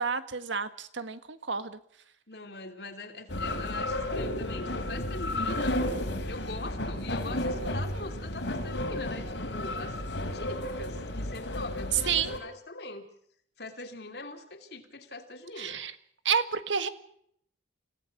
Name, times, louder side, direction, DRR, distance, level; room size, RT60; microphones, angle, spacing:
voice 1, 0.0-1.8 12.1-12.4 15.6-15.9 16.3-16.9, right 6 dB, 85° right, 11 dB, 1.6 m, -30 dB
voice 2, 2.3-5.8 6.3-10.0 10.3-13.1 13.6-15.8, left 2 dB, 60° left, 6 dB, 2.9 m, -42 dB
sound 1, 3.3-12.4, left 1 dB, 80° left, 3.4 m, -32 dB
28.5 x 17.0 x 6.0 m, 0.67 s
head